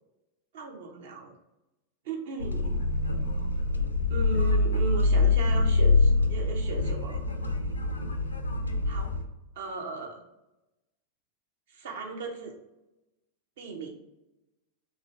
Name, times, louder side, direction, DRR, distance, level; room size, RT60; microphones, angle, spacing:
voice 1, 0.5-1.3 2.0-2.8 4.1-7.2 8.8-9.1 9.5-10.2 11.7-12.6 13.6-13.9, right 4 dB, 55° right, 1 dB, 0.7 m, -37 dB
sound 1, 2.4-9.2, left 3 dB, 80° left, 0.4 m, -25 dB
3.4 x 2.6 x 3.2 m, 0.97 s
figure-of-eight pair, 90°, 0 cm